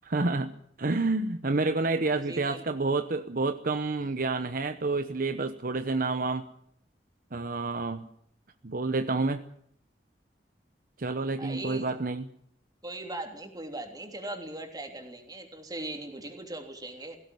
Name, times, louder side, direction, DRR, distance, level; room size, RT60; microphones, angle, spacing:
voice 1, 0.0-6.5 7.3-8.0 8.6-9.4 11.0-12.3, right 3 dB, 55° right, 9 dB, 0.9 m, -29 dB
voice 2, 2.2-2.6 11.4-11.9 12.8-17.2, right 2 dB, 25° right, 4 dB, 3.3 m, -39 dB
18.5 x 16.5 x 9.4 m, 0.68 s
head